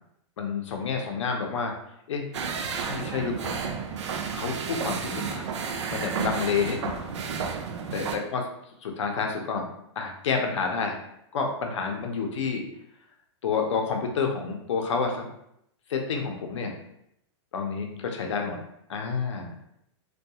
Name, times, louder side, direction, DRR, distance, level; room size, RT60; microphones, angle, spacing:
voice 1, 0.4-1.7 2.1-2.2 2.8-3.6 4.3-5.5 5.9-7.0 7.9-8.1 8.3-8.4 8.8-9.6 10.0-11.0 11.3-12.6 13.4-15.3 15.9-16.7 17.5-18.6 18.9-19.5, left 5 dB, 75° left, 3 dB, 0.6 m, -29 dB
sound 1, 2.3-8.2, right 6 dB, 70° right, 0.4 m, -32 dB
2.3 x 2.2 x 2.8 m, 0.77 s
supercardioid pair, 175°, 15 cm